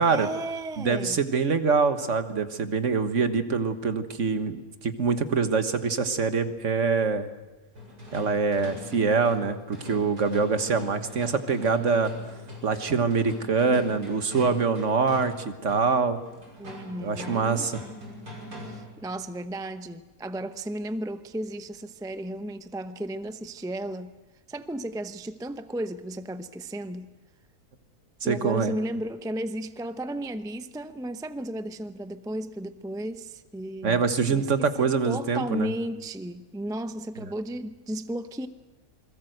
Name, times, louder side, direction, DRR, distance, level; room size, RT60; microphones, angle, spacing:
voice 1, 0.1-1.2 16.6-17.7 18.6-24.1 24.5-27.1 28.2-34.0 34.3-38.5, right 1 dB, 5° right, 10 dB, 0.4 m, -34 dB
voice 2, 0.8-7.3 8.1-12.1 12.6-16.2 17.0-17.8 28.2-28.7 33.8-35.7, right 5 dB, 50° right, 10 dB, 1.6 m, -25 dB
sound 1, 7.7-19.0, left 2 dB, 85° right, 6.2 m, -41 dB
28.0 x 21.5 x 7.9 m, 1.1 s
omnidirectional pair, 1.7 m